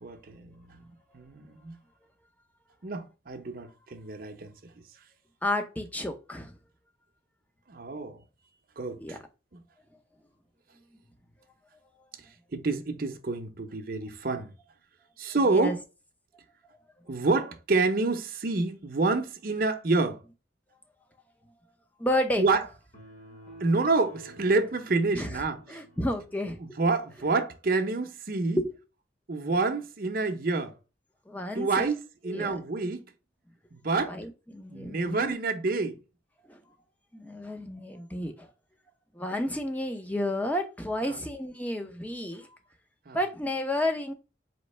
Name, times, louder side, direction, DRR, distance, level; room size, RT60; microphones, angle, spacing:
voice 1, 0.0-0.8 1.1-1.7 2.8-4.5 7.7-8.2 8.8-9.2 9.5-9.6 12.5-14.5 15.2-15.8 17.1-20.2 22.4-22.6 23.6-25.8 26.6-28.6 29.3-30.7 31.5-33.1 33.7-34.2 34.7-36.0 41.1-41.2 43.1-43.2, right 3 dB, 50° right, 0.7 m, -28 dB
voice 2, 5.4-6.5 9.0-9.2 15.5-15.8 22.0-22.4 25.1-25.3 25.7-26.6 28.6-28.7 31.3-31.9 32.2-32.5 34.1-35.3 36.5-36.6 37.1-38.5 39.1-42.5 43.1-44.1, left 1 dB, 10° left, 0.6 m, -31 dB
sound 1, 22.9-26.5, right 1 dB, 40° left, 1.6 m, -51 dB
4.3 x 3.1 x 3.1 m
head